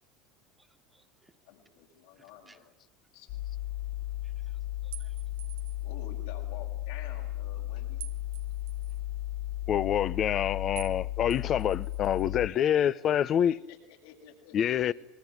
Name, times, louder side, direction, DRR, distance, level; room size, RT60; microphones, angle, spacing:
voice 1, 0.6-1.3 2.2-2.6 4.2-5.1, right 2 dB, 10° right, 1.9 m, -64 dB
voice 2, 1.4-2.7 3.1-3.3 5.8-8.1 12.4-12.9 13.3-13.8 14.0-14.9, left 9 dB, 80° left, 7.7 m, -50 dB
sound 1, 3.3-12.5, left 14 dB, 55° left, 1.1 m, -35 dB
sound 2, 4.9-5.9 8.0-9.0 10.8-11.0 11.3-12.3, right 14 dB, 85° right, 1.5 m, -47 dB
voice 3, 9.7-13.6 14.5-14.9, left 9 dB, 40° left, 1.0 m, -26 dB
25.5 x 23.0 x 9.8 m
supercardioid pair, 120°, 0 cm